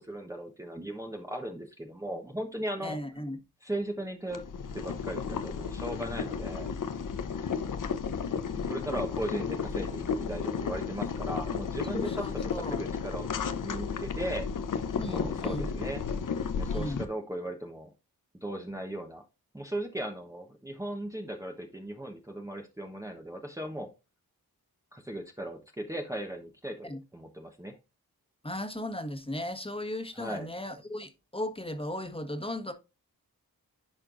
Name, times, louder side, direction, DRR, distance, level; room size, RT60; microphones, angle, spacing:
voice 1, 0.0-3.0 3.6-4.4 4.7-6.7 8.7-14.5 15.1-16.0 16.5-17.9 18.4-19.2 19.5-23.9 24.9-27.8 30.1-30.5, right 1 dB, 10° right, 1.0 m, -37 dB
voice 2, 2.8-3.4 11.9-12.8 15.0-15.7 16.7-17.0 26.8-27.0 28.4-32.7, left 1 dB, 15° left, 1.4 m, -36 dB
Boiling, 4.3-17.0, left 6 dB, 55° left, 0.8 m, -33 dB
10.5 x 4.4 x 2.5 m
cardioid pair, 55°, 38 cm